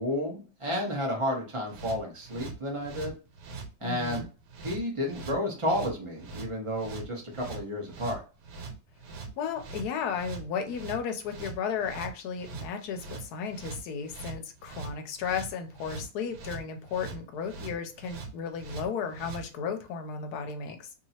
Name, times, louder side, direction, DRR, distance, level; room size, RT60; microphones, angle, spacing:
voice 1, 0.0-3.1 3.8-4.3 4.6-8.2, left 1 dB, 25° right, -1 dB, 0.8 m, -31 dB
sound 1, 1.6-19.5, right 4 dB, 80° right, 1.3 m, -42 dB
voice 2, 3.8-4.3 9.4-20.9, left 6 dB, 75° left, 6 dB, 1.1 m, -34 dB
3.0 x 2.8 x 2.8 m, 0.36 s
omnidirectional pair, 1.8 m